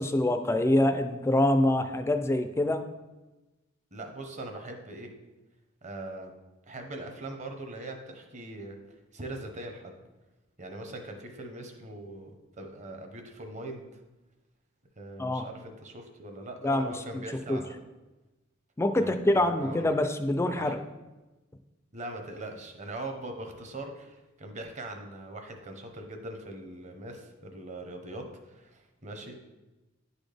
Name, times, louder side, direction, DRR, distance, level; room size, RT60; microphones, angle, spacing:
voice 1, 0.0-2.8 15.2-15.5 16.6-17.2 17.5-17.6 18.8-20.8, left 1 dB, 15° left, 8 dB, 0.4 m, -25 dB
voice 2, 3.9-5.1 5.8-6.3 6.7-8.8 9.1-9.9 10.6-12.3 12.6-14.0 15.0-17.7 19.0-19.9 20.6-20.7 21.9-29.4, right 2 dB, 35° right, 4 dB, 0.9 m, -41 dB
10.5 x 4.1 x 3.4 m, 1.1 s
head